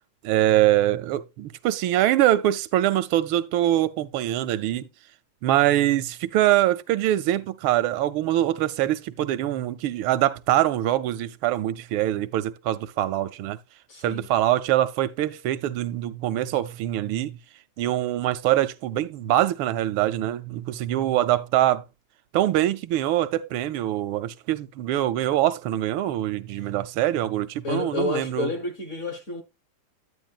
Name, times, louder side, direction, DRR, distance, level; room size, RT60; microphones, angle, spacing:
voice 1, 0.2-4.9 5.4-13.6 14.0-17.4 17.8-21.8 22.3-28.5, right 13 dB, 90° right, 1.5 m, -24 dB
voice 2, 13.9-14.3 27.6-29.4, left 3 dB, 40° left, 1.4 m, -29 dB
9.7 x 9.3 x 2.4 m
omnidirectional pair, 2.2 m